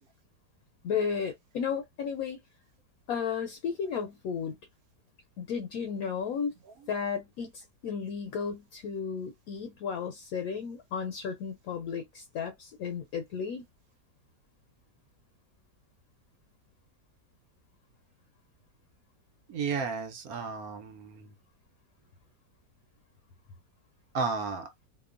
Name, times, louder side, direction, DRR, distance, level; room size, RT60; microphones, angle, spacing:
voice 1, 0.8-2.4 3.1-4.6 5.4-6.5 6.9-13.6, left 6 dB, 70° left, 0.9 m, -34 dB
voice 2, 19.5-21.3 24.1-24.7, right 5 dB, 65° right, 1.0 m, -33 dB
2.9 x 2.1 x 2.4 m
omnidirectional pair, 1.8 m